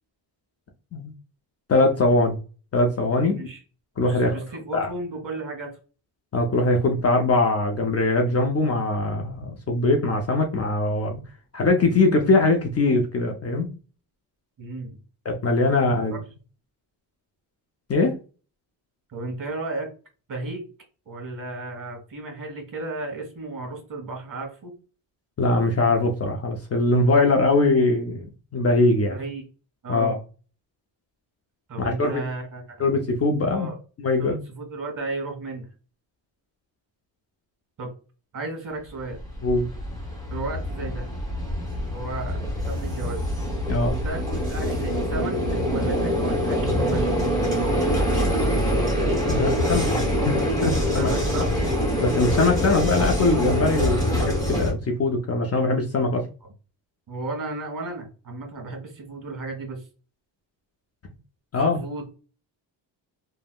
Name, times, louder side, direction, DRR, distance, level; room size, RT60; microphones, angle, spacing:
voice 1, 1.7-2.4 2.7-3.4 4.0-4.4 4.7-4.9 6.3-11.2 11.5-13.7 15.3-16.2 17.9-18.2 25.4-28.2 28.5-29.2 29.9-30.2 31.8-32.2 32.8-33.7 34.0-34.4 39.4-39.7 43.7-44.0 49.3-49.9 50.2-51.2 52.0-56.2 61.5-61.8, left 2 dB, 35° left, 3 dB, 0.5 m, -22 dB
voice 2, 4.0-5.7 14.6-15.0 16.1-16.2 19.1-19.9 20.3-20.6 21.1-24.7 28.9-29.4 29.8-30.2 31.7-32.6 33.5-33.8 34.2-35.7 37.8-37.9 38.3-39.2 40.3-41.1 41.9-43.2 44.0-45.4 45.7-48.3 51.0-51.5 57.1-59.8 61.6-62.0, right 2 dB, 45° right, 3 dB, 1.3 m, -34 dB
Vehicle, 39.1-54.7, equal, 10° left, 1.3 m, -24 dB
3.4 x 2.1 x 2.3 m, 0.35 s
cardioid pair, 95°, 46 cm